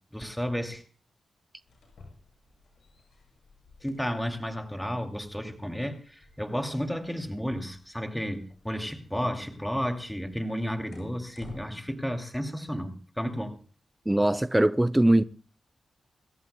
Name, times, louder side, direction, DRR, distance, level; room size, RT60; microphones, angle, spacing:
voice 1, 0.1-0.8 3.8-13.6, equal, 5° left, 2.5 m, -32 dB
sound 1, 1.6-11.7, left 2 dB, 75° left, 7.3 m, -55 dB
voice 2, 14.1-15.2, right 1 dB, 15° right, 0.5 m, -21 dB
26.5 x 14.0 x 2.2 m
cardioid pair, 45°, 0 cm